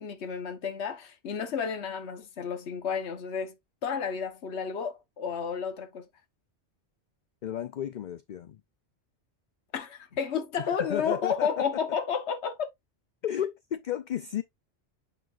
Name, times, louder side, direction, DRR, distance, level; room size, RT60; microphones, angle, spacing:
voice 1, 0.0-3.5 3.8-6.1 9.7-12.7, left 6 dB, 70° left, 1.4 m, -31 dB
voice 2, 7.4-8.6 10.9-11.6 13.2-14.4, left 10 dB, 55° left, 0.6 m, -33 dB
9.0 x 4.6 x 2.5 m
omnidirectional pair, 1.2 m